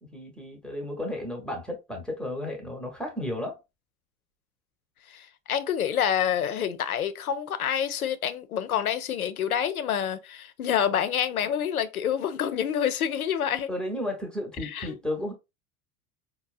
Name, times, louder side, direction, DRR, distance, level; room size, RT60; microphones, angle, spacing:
voice 1, 0.0-3.6 10.8-11.0 13.7-15.3, left 1 dB, ahead, 0.8 m, -33 dB
voice 2, 5.1-13.7 14.6-15.0, left 9 dB, 80° left, 0.5 m, -27 dB
4.1 x 2.1 x 2.4 m
figure-of-eight pair, 75°, 43 cm